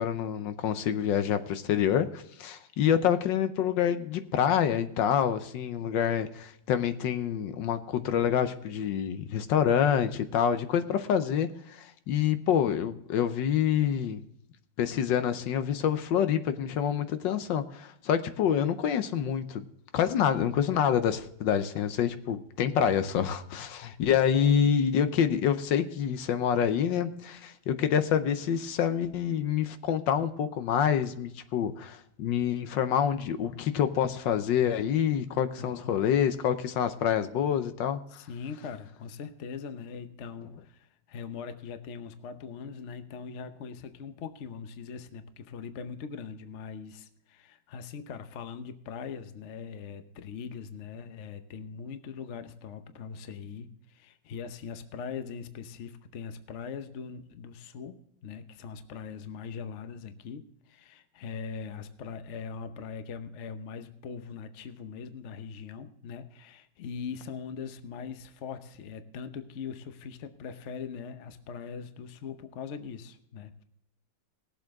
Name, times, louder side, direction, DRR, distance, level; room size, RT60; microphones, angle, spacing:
voice 1, 0.0-14.2 14.8-19.6 19.9-38.0, left 8 dB, 75° left, 10 dB, 1.4 m, -27 dB
voice 2, 35.6-36.1 38.1-73.6, left 6 dB, 50° left, 9 dB, 0.9 m, -41 dB
19.0 x 7.7 x 3.6 m, 0.72 s
omnidirectional pair, 2.0 m